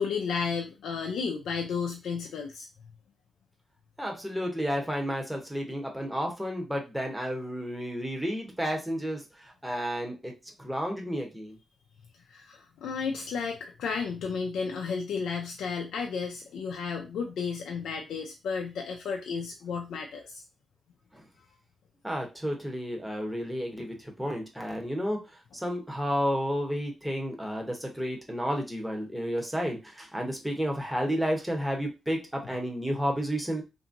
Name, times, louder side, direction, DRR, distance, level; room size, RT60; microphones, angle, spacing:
voice 1, 0.0-2.7 12.3-20.4, left 5 dB, 90° left, 1 dB, 0.4 m, -33 dB
voice 2, 4.0-10.3 10.6-11.6 21.1-21.2 22.0-33.6, equal, 5° right, 1 dB, 0.8 m, -31 dB
2.8 x 2.6 x 2.6 m, 0.26 s
cardioid pair, 90°, 0 cm